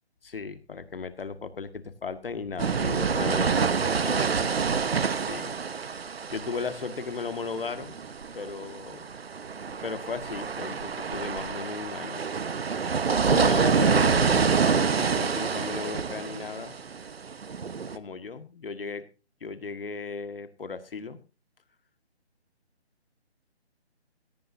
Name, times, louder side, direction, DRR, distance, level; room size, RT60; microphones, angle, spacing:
voice 1, 0.2-4.5 5.1-5.6 6.3-8.0 8.3-9.1 9.8-12.2 13.2-14.6 14.9-16.8 17.9-19.1 19.4-21.2, left 5 dB, 55° left, 11 dB, 1.8 m, -36 dB
sound 1, 2.6-18.0, right 5 dB, 65° right, 1.2 m, -27 dB
17.0 x 15.5 x 2.7 m, 0.32 s
hypercardioid pair, 170°, 33 cm